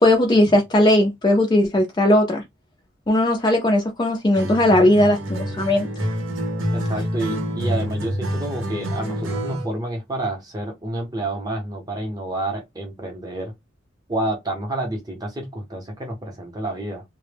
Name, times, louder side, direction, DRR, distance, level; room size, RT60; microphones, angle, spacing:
voice 1, 0.0-2.4 3.1-5.9, left 1 dB, 20° left, 0.3 m, -18 dB
Acoustic guitar, 4.3-9.7, equal, 75° right, 0.7 m, -27 dB
voice 2, 6.7-13.5 14.1-17.0, right 1 dB, 20° right, 0.6 m, -29 dB
2.1 x 2.0 x 3.2 m
head